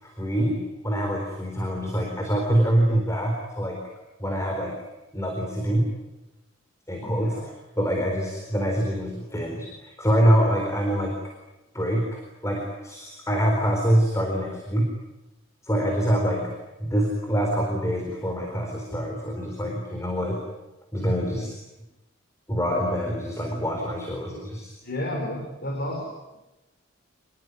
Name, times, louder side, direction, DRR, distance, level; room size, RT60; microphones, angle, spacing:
voice 1, 0.0-3.8 4.2-4.8 5.1-5.9 6.9-7.4 7.8-11.1 11.7-14.9 15.6-16.5 16.8-20.4 20.9-21.5 22.5-24.7, equal, 15° left, 1 dB, 4.2 m, -25 dB
voice 2, 7.0-7.4 24.8-26.1, left 1 dB, 50° left, 0 dB, 5.4 m, -31 dB
27.0 x 21.0 x 9.7 m, 1.0 s
head